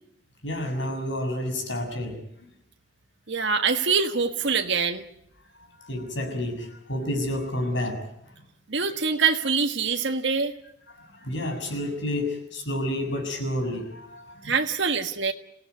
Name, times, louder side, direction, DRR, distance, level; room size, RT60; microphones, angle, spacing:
voice 1, 0.4-2.2 5.8-8.0 10.9-14.5, left 1 dB, 70° left, 4 dB, 6.8 m, -30 dB
voice 2, 3.3-5.0 8.7-10.5 14.4-15.3, right 5 dB, 70° right, 4 dB, 1.6 m, -24 dB
28.0 x 16.5 x 9.5 m, 0.77 s
head